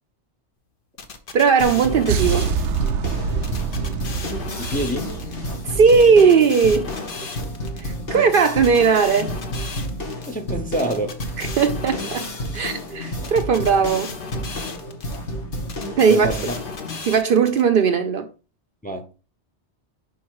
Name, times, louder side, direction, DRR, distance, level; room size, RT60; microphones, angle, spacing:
sound 1, 1.0-2.9 3.4-5.4 5.9-7.8 8.3-10.3 10.8-12.7 13.2-15.2 15.7-17.6, left 4 dB, 55° left, 1.0 m, -36 dB
voice 1, 1.3-2.5 5.6-6.9 7.8-9.3 11.4-12.3 12.5-14.1 16.0-16.4 17.0-18.3, right 5 dB, 60° right, 0.7 m, -17 dB
sound 2, 1.6-17.0, equal, 80° left, 1.9 m, -31 dB
sound 3, 2.1-6.2, right 6 dB, 85° right, 0.9 m, -26 dB
voice 2, 4.6-5.1 10.3-11.2 16.1-16.6 18.8-19.1, right 1 dB, 10° left, 0.6 m, -27 dB
5.5 x 5.1 x 4.7 m
omnidirectional pair, 1.2 m